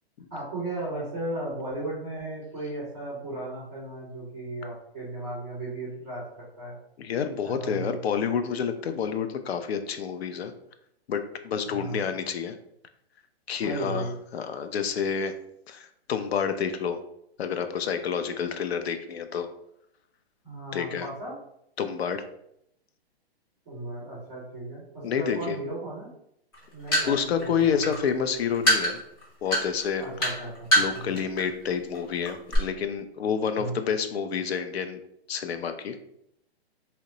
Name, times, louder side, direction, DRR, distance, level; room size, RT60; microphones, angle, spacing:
voice 1, 0.3-6.8 7.4-8.0 11.6-12.1 13.6-14.2 20.4-21.3 23.6-26.1 26.7-28.0 30.0-31.2 33.6-33.8, right 2 dB, 10° right, -9 dB, 0.4 m, -36 dB
voice 2, 7.0-10.5 11.1-12.5 13.5-14.1 14.3-15.3 15.7-17.0 17.4-19.5 20.7-21.1 21.8-22.3 25.0-25.6 27.1-29.0 29.4-30.0 30.8-35.0 35.3-36.0, left 7 dB, 70° left, 8 dB, 0.5 m, -29 dB
sound 1, 26.5-31.4 31.7-32.0 32.2-32.6, equal, 20° left, 0.9 m, -24 dB
2.9 x 2.1 x 3.8 m, 0.76 s
hypercardioid pair, 175°, 32 cm